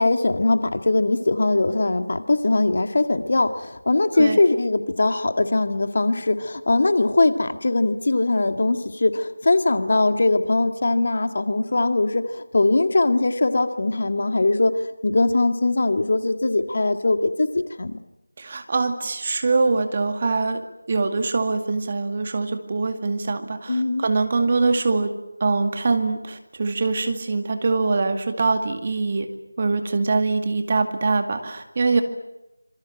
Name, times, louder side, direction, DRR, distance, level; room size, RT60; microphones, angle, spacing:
voice 1, 0.0-18.0 23.7-24.0, left 2 dB, 45° left, 8 dB, 1.9 m, -21 dB
voice 2, 18.4-20.6 20.9-25.1 25.4-29.3 29.6-32.0, right 3 dB, 30° right, 6 dB, 2.2 m, -23 dB
27.0 x 23.0 x 7.7 m, 0.94 s
figure-of-eight pair, 170°, 0 cm